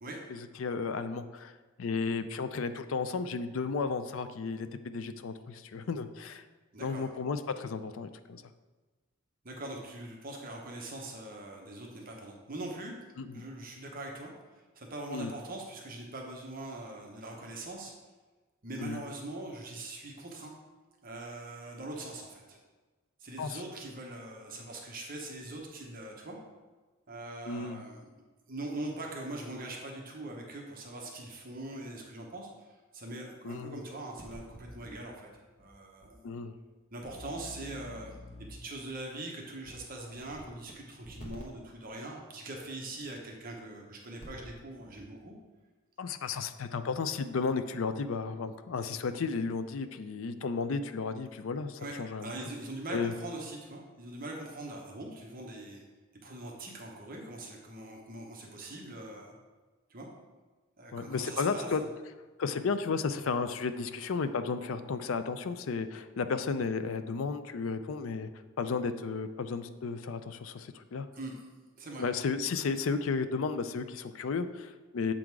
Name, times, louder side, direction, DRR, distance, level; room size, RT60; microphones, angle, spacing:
voice 1, 0.3-1.5 1.8-6.4 6.8-8.4 13.2-13.4 15.1-15.3 18.8-19.0 23.4-23.6 27.5-27.8 33.4-33.8 36.2-36.5 46.0-52.3 52.9-53.1 60.9-61.8 62.4-68.3 68.6-71.1 72.0-75.1, left 4 dB, 70° left, 10 dB, 0.4 m, -33 dB
voice 2, 6.7-7.0 9.4-12.9 13.3-17.9 18.6-20.5 21.0-22.6 23.2-26.4 27.1-28.1 28.5-35.3 35.6-36.2 36.9-38.2 38.5-45.3 51.8-55.8 56.2-59.3 59.9-60.1 60.8-61.7 71.1-71.5 71.8-72.1, right 2 dB, 45° right, 0 dB, 0.9 m, -42 dB
sound 1, 34.2-34.9 35.6-35.7 36.0-36.1 37.0-38.7 39.7-39.8 40.2-40.7 41.0-41.4 43.0-43.1 44.0-44.5 44.8-45.0, left 1 dB, 30° left, 1.1 m, -48 dB
7.4 x 3.8 x 4.6 m, 1.3 s
head